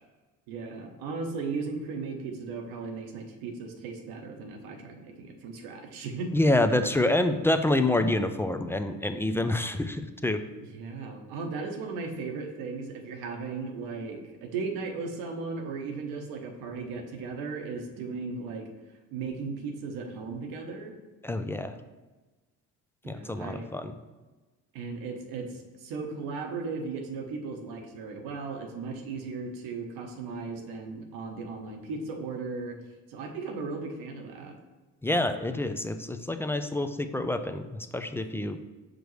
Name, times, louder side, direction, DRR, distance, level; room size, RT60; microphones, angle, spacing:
voice 1, 0.5-6.3 10.6-18.7 19.1-20.9 23.0-23.7 24.7-32.8 33.1-34.5, right 4 dB, 90° right, 3 dB, 1.0 m, -36 dB
voice 2, 6.3-10.4 21.2-21.7 23.1-23.9 35.0-38.6, left 1 dB, 5° left, 8 dB, 0.3 m, -27 dB
6.3 x 5.1 x 3.1 m, 1.2 s
cardioid pair, 90°, 36 cm